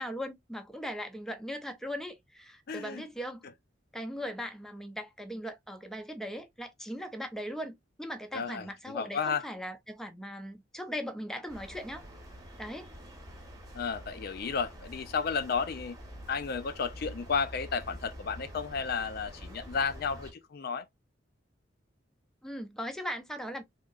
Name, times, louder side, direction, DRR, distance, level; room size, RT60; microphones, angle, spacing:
voice 1, 0.0-3.4 3.9-12.0 12.6-12.9 22.4-23.6, equal, ahead, 0.5 m, -39 dB
voice 2, 2.7-3.0 8.3-9.4 13.7-16.0 16.3-20.9, left 5 dB, 55° left, 0.4 m, -33 dB
sound 1, 11.5-20.3, equal, 20° right, 1.0 m, -47 dB
3.6 x 2.8 x 2.4 m
head